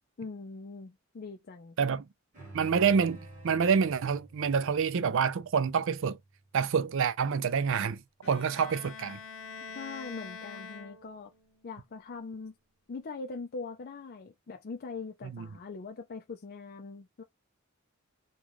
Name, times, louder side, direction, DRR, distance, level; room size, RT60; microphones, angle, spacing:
voice 1, 0.2-1.8 9.7-11.3 11.6-12.5 12.9-17.2, left 4 dB, 45° left, 0.4 m, -42 dB
sound 1, 2.3-7.1, right 2 dB, 35° right, 2.0 m, -50 dB
voice 2, 2.5-6.2 6.5-9.2 15.2-15.5, right 6 dB, 65° right, 0.4 m, -27 dB
Bowed string instrument, 8.2-11.4, left 5 dB, 75° left, 1.1 m, -45 dB
4.0 x 2.3 x 3.0 m
head